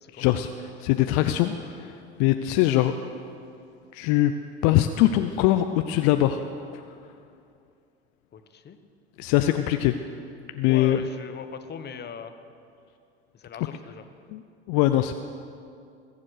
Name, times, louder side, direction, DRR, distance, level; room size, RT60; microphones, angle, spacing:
voice 1, 0.1-2.9 3.9-4.3 4.6-6.4 6.7-6.8 9.2-9.9 10.5-11.0 14.3-14.4 14.7-15.1, left 14 dB, 60° left, 8 dB, 0.7 m, -22 dB
voice 2, 8.3-8.8 10.7-12.3 13.3-14.0, left 7 dB, 30° left, 9 dB, 1.1 m, -40 dB
21.5 x 7.5 x 6.5 m, 2.4 s
hypercardioid pair, 85°, 34 cm